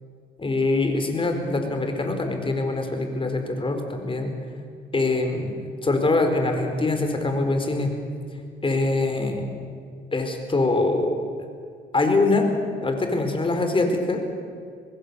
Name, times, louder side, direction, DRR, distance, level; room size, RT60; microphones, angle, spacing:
voice 1, 0.4-4.3 4.9-7.9 8.6-9.4 10.1-11.2 11.9-12.5 12.8-14.2, left 2 dB, 25° left, 5 dB, 4.3 m, -23 dB
25.5 x 20.5 x 7.0 m, 2.2 s
cardioid pair, 90°, 20 cm